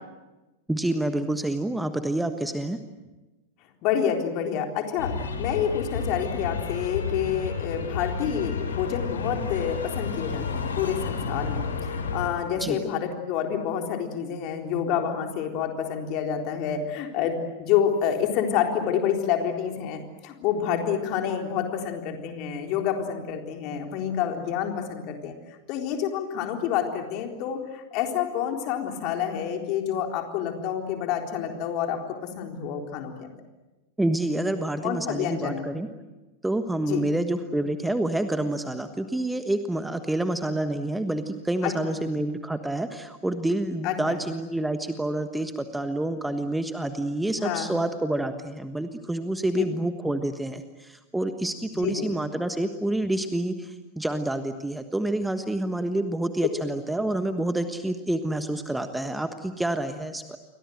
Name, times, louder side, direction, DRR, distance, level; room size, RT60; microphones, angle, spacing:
voice 1, 0.7-2.8 12.6-12.8 34.0-35.9 36.4-60.4, right 1 dB, 5° right, 9 dB, 1.4 m, -28 dB
voice 2, 3.8-25.3 25.7-32.0 32.4-33.3 34.8-35.7 36.8-37.1 41.6-41.7 43.8-44.2 47.4-47.8 49.5-49.6 51.7-52.2, left 8 dB, 40° left, 3 dB, 3.9 m, -28 dB
sound 1, 5.0-12.3, left 4 dB, 70° left, 3.8 m, -31 dB
29.5 x 23.5 x 8.0 m, 1.1 s
figure-of-eight pair, 90°, 0 cm